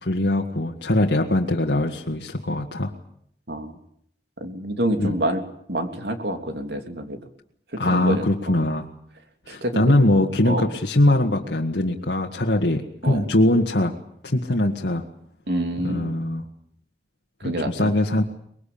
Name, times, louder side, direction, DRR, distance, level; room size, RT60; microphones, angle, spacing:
voice 1, 0.0-2.9 5.0-5.2 7.8-8.9 9.5-14.0 14.2-15.1 15.8-16.4 17.4-18.2, left 1 dB, 85° left, 0 dB, 1.9 m, -22 dB
voice 2, 3.5-3.8 4.4-5.4 5.7-7.2 7.8-8.7 9.5-10.1 10.4-10.7 13.0-13.3 15.5-16.1 17.4-17.9, right 1 dB, 70° right, 6 dB, 3.2 m, -27 dB
24.5 x 22.0 x 8.7 m, 0.68 s
head